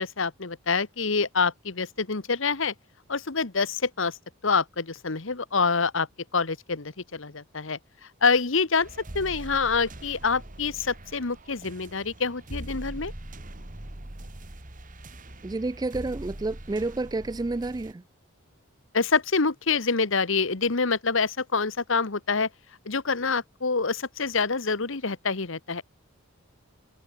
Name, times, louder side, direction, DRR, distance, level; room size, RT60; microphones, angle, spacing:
voice 1, 0.0-2.7 3.1-4.2 4.4-6.1 6.3-7.8 8.2-8.9 9.1-13.1 18.9-22.5 22.8-25.8, left 4 dB, 65° left, 1.3 m, -26 dB
sound 1, 8.8-17.9, right 1 dB, 40° right, 2.1 m, -42 dB
voice 2, 15.4-18.0, right 2 dB, 20° right, 0.4 m, -30 dB
head